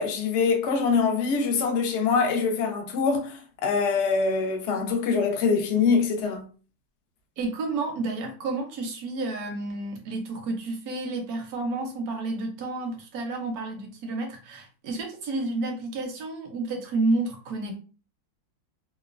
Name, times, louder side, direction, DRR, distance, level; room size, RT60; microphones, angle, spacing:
voice 1, 0.0-6.5, left 5 dB, 80° left, 0.6 m, -24 dB
voice 2, 7.4-17.8, right 2 dB, 70° right, 0.9 m, -30 dB
3.0 x 2.1 x 2.3 m
omnidirectional pair, 1.9 m